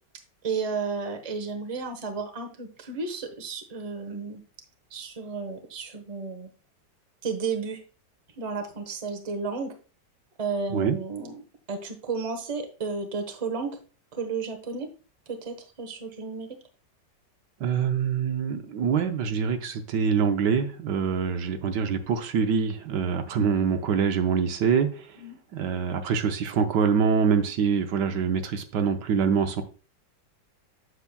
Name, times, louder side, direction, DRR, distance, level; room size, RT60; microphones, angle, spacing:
voice 1, 0.4-4.4 4.9-6.5 7.2-7.8 8.3-9.7 10.4-11.4 11.7-13.8 14.1-14.9 15.3-16.5 25.2-25.4, right 4 dB, 25° right, 5 dB, 0.9 m, -32 dB
voice 2, 17.6-25.2 25.5-29.6, right 6 dB, 75° right, 7 dB, 1.3 m, -25 dB
8.2 x 7.0 x 2.2 m, 0.36 s
omnidirectional pair, 1.9 m